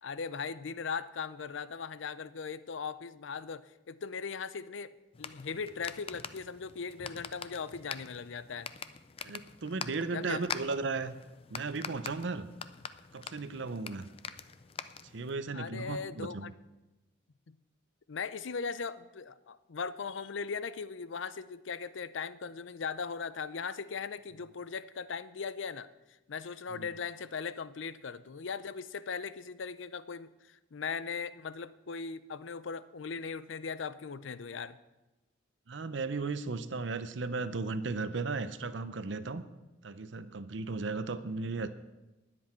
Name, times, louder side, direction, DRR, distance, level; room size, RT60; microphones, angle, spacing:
voice 1, 0.0-8.7 10.1-10.4 15.5-16.5 17.5-17.6 18.1-25.9 26.3-34.8, left 5 dB, 80° left, 15 dB, 0.5 m, -39 dB
sound 1, 5.1-15.4, left 6 dB, 30° left, 0.4 m, -45 dB
voice 2, 9.2-11.2 11.5-12.5 13.1-14.1 15.1-16.5 26.7-26.9 35.7-39.4 39.8-41.7, right 3 dB, 70° right, 12 dB, 0.7 m, -35 dB
20.0 x 7.8 x 4.4 m, 1.0 s
head